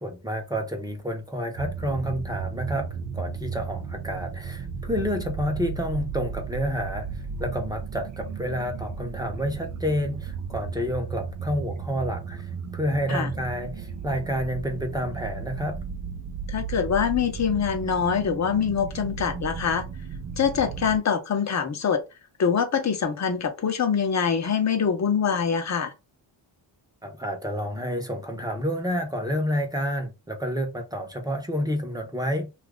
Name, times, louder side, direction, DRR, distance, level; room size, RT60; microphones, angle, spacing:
voice 1, 0.0-2.9 3.1-7.1 7.4-15.8 27.0-32.5, equal, 10° right, 0.8 m, -29 dB
sound 1, 1.6-21.0, right 6 dB, 45° right, 0.5 m, -35 dB
voice 2, 16.5-19.8 20.4-22.0 22.4-25.9, left 7 dB, 40° left, 0.8 m, -24 dB
2.8 x 2.5 x 3.5 m
cardioid pair, 105°, 44 cm